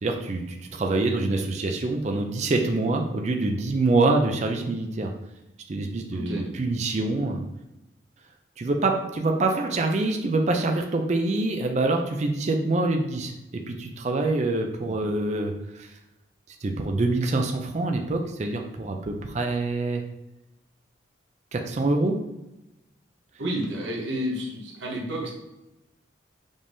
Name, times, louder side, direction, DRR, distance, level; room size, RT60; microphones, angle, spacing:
voice 1, 0.0-5.1 5.7-7.4 8.6-15.9 16.6-20.0 21.5-22.2, right 2 dB, 35° right, 4 dB, 0.4 m, -25 dB
voice 2, 6.1-6.5 23.4-25.3, equal, 75° right, -2 dB, 1.0 m, -30 dB
5.2 x 3.4 x 2.6 m, 0.93 s
head